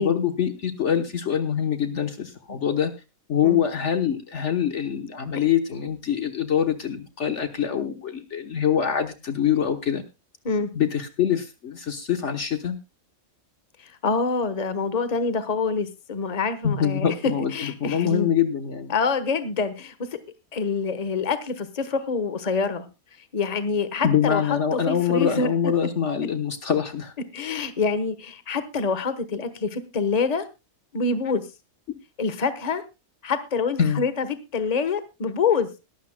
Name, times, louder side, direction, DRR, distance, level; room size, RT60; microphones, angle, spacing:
voice 1, 0.0-2.9 3.3-10.0 10.7-12.8 16.6-18.9 24.0-27.1 33.8-34.0, left 8 dB, 55° left, 7 dB, 1.3 m, -24 dB
voice 2, 13.8-17.1 17.5-18.3 18.9-20.2 20.5-22.9 23.3-25.5 27.3-30.4 30.9-31.5 32.2-32.8 33.2-34.3 34.5-35.7, left 5 dB, 30° left, 12 dB, 1.2 m, -26 dB
22.0 x 12.0 x 2.2 m, 0.26 s
omnidirectional pair, 1.5 m